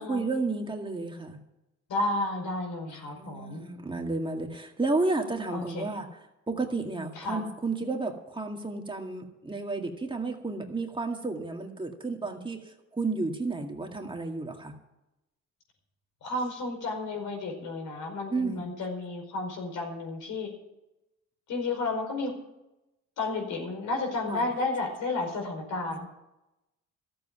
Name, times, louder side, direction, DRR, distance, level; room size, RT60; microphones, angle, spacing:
voice 1, 0.0-1.4 2.9-6.1 6.5-14.7 18.3-18.7 24.3-24.5 25.9-26.0, right 3 dB, 15° right, 2 dB, 2.1 m, -32 dB
voice 2, 1.9-3.6 5.5-5.9 7.1-7.4 16.2-20.5 21.5-22.3 23.2-26.0, left 2 dB, 80° left, 2 dB, 5.0 m, -32 dB
13.5 x 7.9 x 9.6 m, 0.91 s
cardioid pair, 90°, 30 cm